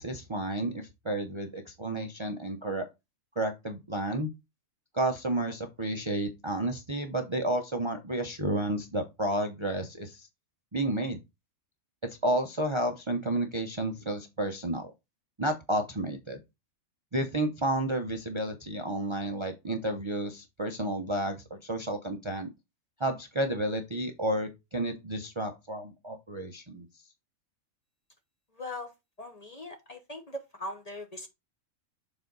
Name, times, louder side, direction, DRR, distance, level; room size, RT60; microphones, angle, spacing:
voice 1, 0.0-2.9 3.4-4.3 4.9-10.3 10.7-11.2 12.0-14.9 15.4-16.4 17.1-22.5 23.0-26.9, right 1 dB, 30° right, 0.6 m, -31 dB
voice 2, 28.6-28.9 29.2-31.3, left 1 dB, 35° left, 0.9 m, -40 dB
7.0 x 4.0 x 3.9 m
omnidirectional pair, 1.4 m